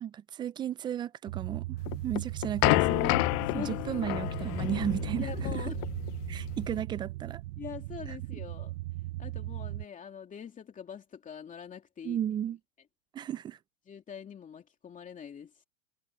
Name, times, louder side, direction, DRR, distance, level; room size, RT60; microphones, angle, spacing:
voice 1, 0.0-1.8 2.0-3.2 3.5-5.6 6.3-7.4 12.0-12.6 13.1-13.6, right 10 dB, 15° right, 0.3 m, -34 dB
sound 1, 1.3-9.8, right 18 dB, 60° right, 0.6 m, -38 dB
sound 2, 1.9-6.8, left 26 dB, 40° left, 0.6 m, -30 dB
voice 2, 3.4-4.1 5.2-5.8 7.6-8.8 9.2-12.2 13.9-15.6, left 7 dB, 20° left, 2.7 m, -44 dB
hypercardioid pair, 120°, 36 cm